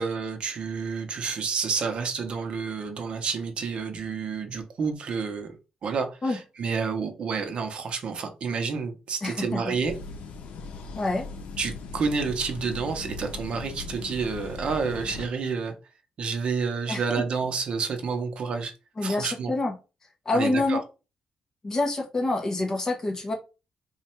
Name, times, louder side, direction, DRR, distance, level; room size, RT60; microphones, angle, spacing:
voice 1, 0.0-5.5 5.8-9.9 11.6-15.7 16.2-18.7 19.0-19.5 20.3-20.8, right 5 dB, 50° right, 0.7 m, -29 dB
voice 2, 9.2-9.6 11.0-11.2 16.9-17.2 19.0-19.7 20.3-20.8 21.6-23.3, left 2 dB, 25° left, 0.9 m, -27 dB
sound 1, 9.8-15.3, left 4 dB, 85° left, 0.6 m, -39 dB
3.1 x 2.4 x 4.3 m
wide cardioid pair, 165°, 2 cm